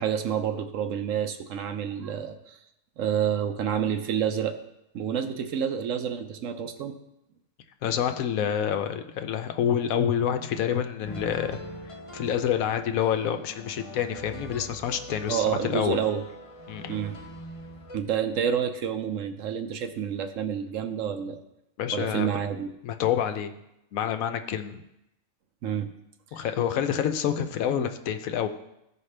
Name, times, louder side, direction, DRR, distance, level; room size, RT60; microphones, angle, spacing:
voice 1, 0.0-2.6 3.0-4.6 4.9-6.9 15.3-16.2 16.9-17.2 17.9-21.4 21.9-22.7 25.6-25.9 26.3-26.5, right 8 dB, 70° right, 7 dB, 1.0 m, -28 dB
voice 2, 7.8-11.6 11.9-16.0 16.7-17.0 21.8-22.3 22.8-23.5 23.9-24.8 26.3-28.5, left 9 dB, 80° left, 8 dB, 1.1 m, -27 dB
sound 1, 11.0-18.0, equal, 45° left, 0.4 m, -42 dB
14.5 x 5.0 x 3.3 m, 0.86 s
omnidirectional pair, 1.5 m